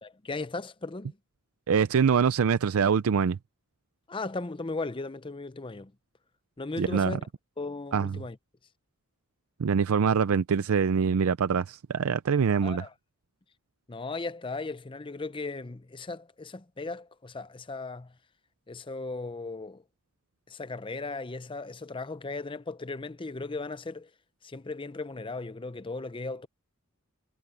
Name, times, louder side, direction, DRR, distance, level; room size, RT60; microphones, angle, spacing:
voice 1, 0.0-1.2 4.1-5.9 6.6-7.3 7.6-8.4 12.6-12.9 13.9-18.2 18.7-19.8 20.5-24.1 24.4-26.5, left 3 dB, 25° left, 0.6 m, -37 dB
voice 2, 1.7-3.4 6.8-7.1 7.9-8.1 9.6-12.8, right 6 dB, 85° right, 0.5 m, -24 dB
head